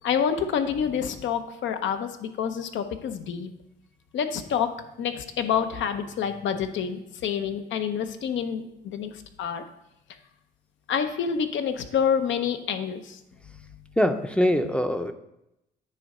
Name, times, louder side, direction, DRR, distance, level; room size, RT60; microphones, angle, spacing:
voice 1, 0.0-3.5 4.1-4.7 5.0-9.6 10.9-13.2, left 7 dB, 70° left, 8 dB, 0.8 m, -27 dB
voice 2, 14.0-15.1, equal, 5° left, 8 dB, 0.5 m, -23 dB
9.1 x 3.8 x 5.4 m, 0.85 s
cardioid pair, 90°, 20 cm